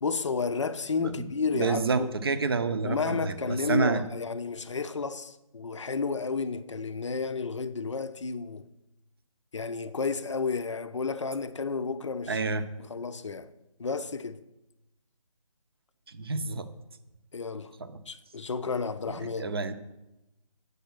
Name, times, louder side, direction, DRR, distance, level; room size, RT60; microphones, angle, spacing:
voice 1, 0.0-2.1 2.8-8.7 9.5-12.4 12.8-13.5 13.8-14.4 17.3-17.7 18.1-19.5, left 4 dB, 55° left, 0.6 m, -32 dB
voice 2, 1.5-4.0 12.3-12.6 16.1-16.7 17.8-17.9 19.1-19.7, right 4 dB, 40° right, 0.6 m, -29 dB
8.2 x 5.4 x 6.0 m
figure-of-eight pair, 155°, 18 cm